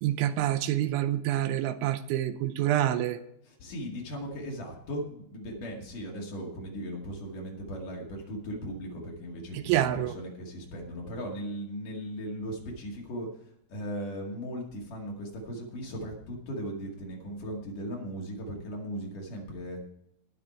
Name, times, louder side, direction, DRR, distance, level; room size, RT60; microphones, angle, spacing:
voice 1, 0.0-3.2 9.5-10.2, right 12 dB, 80° right, 12 dB, 3.0 m, -27 dB
voice 2, 3.4-13.3 13.7-19.8, equal, 50° left, -1 dB, 3.2 m, -38 dB
19.0 x 6.8 x 4.4 m, 0.77 s
omnidirectional pair, 5.5 m